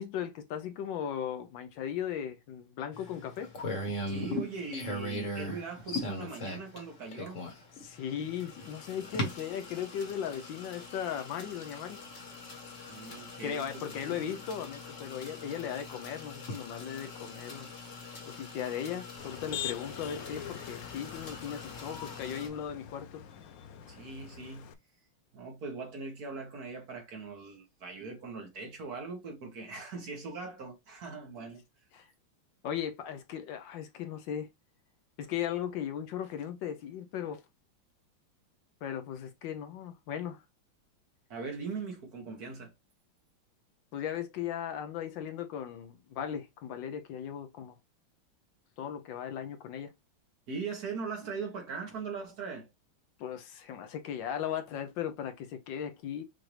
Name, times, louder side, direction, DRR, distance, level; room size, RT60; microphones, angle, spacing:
voice 1, 0.0-3.5 7.8-12.0 13.4-17.7 18.3-23.2 31.9-32.1 32.6-34.5 35.2-37.4 38.8-40.4 43.9-47.7 48.8-49.9 53.2-56.2, left 9 dB, 70° left, 1.3 m, -37 dB
sound 1, 2.9-22.5, left 1 dB, 45° left, 1.5 m, -41 dB
voice 2, 4.1-7.4 12.9-14.2 23.8-24.7 25.3-31.6 41.3-42.7 50.5-52.7, right 4 dB, 55° right, 1.5 m, -40 dB
Motor vehicle (road), 19.2-24.7, left 10 dB, 90° left, 0.7 m, -44 dB
5.9 x 2.6 x 3.2 m
omnidirectional pair, 2.2 m